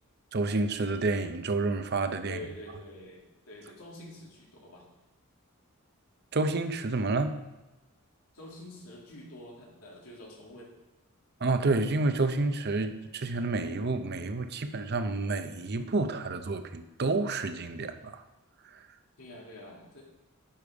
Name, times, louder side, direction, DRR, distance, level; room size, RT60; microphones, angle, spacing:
voice 1, 0.3-2.4 6.3-7.4 11.4-18.2 18.7-18.8, right 3 dB, 50° right, 9 dB, 0.7 m, -29 dB
voice 2, 2.2-4.9 8.3-10.7 19.2-20.1, left 1 dB, 85° left, -2 dB, 2.5 m, -47 dB
10.0 x 6.8 x 4.8 m, 1.1 s
head